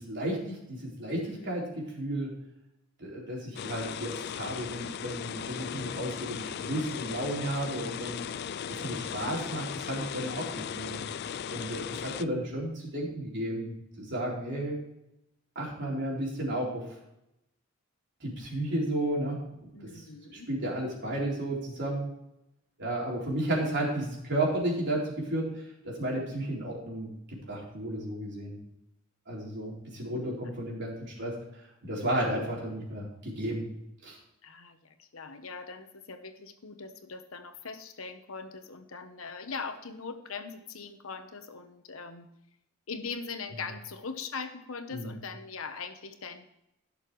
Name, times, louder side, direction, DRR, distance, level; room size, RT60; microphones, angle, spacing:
voice 1, 0.0-2.3 3.0-8.3 8.7-11.0 11.5-14.8 15.6-16.8 18.2-19.4 19.9-20.0 20.3-22.1 22.8-28.6 29.3-31.3 31.8-33.6 34.0-34.2 44.9-45.1, right 1 dB, 55° right, -3 dB, 3.9 m, -33 dB
voice 2, 1.2-1.7 19.7-20.5 34.4-42.3 42.9-46.5, left 5 dB, 85° left, 8 dB, 1.1 m, -41 dB
sound 1, 3.6-12.3, left 8 dB, 50° left, 0.3 m, -37 dB
16.5 x 6.7 x 3.2 m, 0.85 s
head